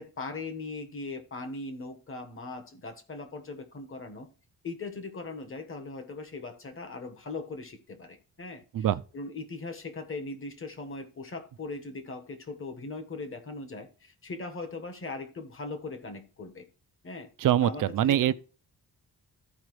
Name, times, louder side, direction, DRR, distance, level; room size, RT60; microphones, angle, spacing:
voice 1, 0.0-4.3 4.6-8.9 9.1-16.6 17.0-17.3 17.6-18.3, left 3 dB, 35° left, 1.4 m, -39 dB
voice 2, 17.4-18.3, right 11 dB, 55° right, 0.5 m, -24 dB
14.5 x 4.9 x 3.2 m
wide cardioid pair, 145°, 37 cm